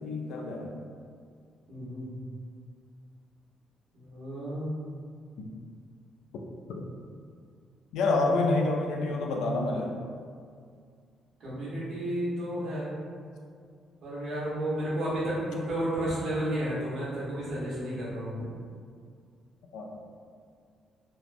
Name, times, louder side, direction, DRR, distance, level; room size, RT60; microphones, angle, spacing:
voice 1, 0.0-0.7 5.4-5.5 6.8-6.9 7.9-9.9 19.7-19.9, left 2 dB, 85° left, 1 dB, 0.3 m, -28 dB
voice 2, 1.7-2.1 3.9-4.7 11.4-12.9 14.0-18.5, right 1 dB, 70° right, -8 dB, 1.0 m, -32 dB
2.8 x 2.0 x 2.5 m, 2.2 s
cardioid pair, 90°, 0 cm